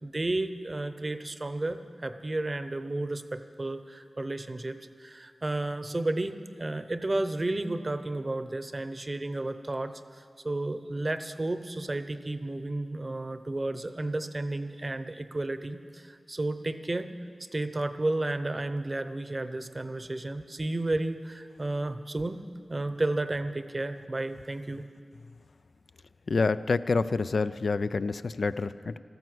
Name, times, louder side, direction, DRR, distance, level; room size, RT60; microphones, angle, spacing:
voice 1, 0.0-17.1 17.5-22.4 22.7-24.9, right 2 dB, 30° right, 10 dB, 0.7 m, -32 dB
voice 2, 26.3-29.0, left 4 dB, 65° left, 13 dB, 0.3 m, -27 dB
13.5 x 12.5 x 7.8 m, 2.3 s
wide cardioid pair, 80°, 0 cm